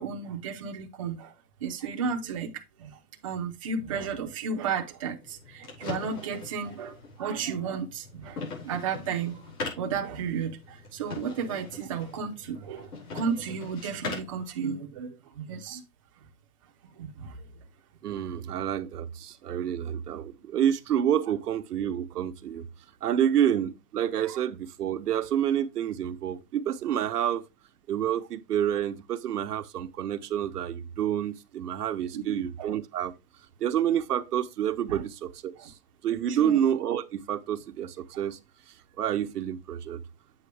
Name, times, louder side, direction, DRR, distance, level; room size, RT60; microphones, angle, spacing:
voice 1, 0.0-1.3 1.6-9.5 9.8-15.8 17.0-17.5 22.2-22.3 32.1-32.7 34.9-35.0 35.6-35.7 36.3-36.6, right 6 dB, 25° right, 0.6 m, -33 dB
sound 1, 5.2-14.4, left 4 dB, 80° left, 5.5 m, -41 dB
voice 2, 18.0-22.7 23.0-27.4 27.9-33.1 33.6-35.7 36.0-38.4 39.0-40.0, right 10 dB, 90° right, 0.9 m, -28 dB
8.2 x 5.7 x 3.3 m
hypercardioid pair, 165°, 45 cm